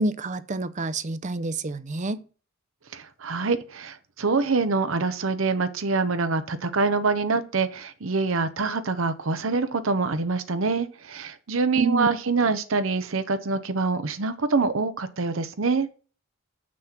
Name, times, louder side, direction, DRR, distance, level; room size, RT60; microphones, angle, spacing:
voice 1, 0.0-2.2 11.8-12.1, right 2 dB, 35° right, 0.6 m, -28 dB
voice 2, 2.9-15.9, right 4 dB, 80° right, 0.8 m, -25 dB
7.5 x 6.2 x 5.9 m
head